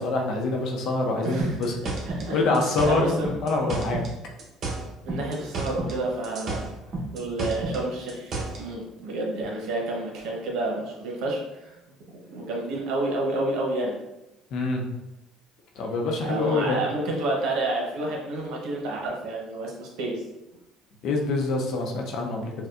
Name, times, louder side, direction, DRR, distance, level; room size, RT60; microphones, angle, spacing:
voice 1, 0.0-1.8 2.3-3.1 3.4-4.1 14.5-14.8 15.8-16.8 21.0-22.5, left 3 dB, 65° left, 1 dB, 0.7 m, -25 dB
voice 2, 1.2-2.5 2.8-3.3 5.0-6.7 7.1-11.8 12.3-14.0 16.2-20.2, right 2 dB, 75° right, -1 dB, 0.9 m, -30 dB
sound 1, 1.4-4.1 4.4-6.0 6.2-8.6, right 2 dB, 45° right, 0.9 m, -31 dB
4.3 x 2.2 x 2.5 m, 0.93 s
supercardioid pair, 90°, 0 cm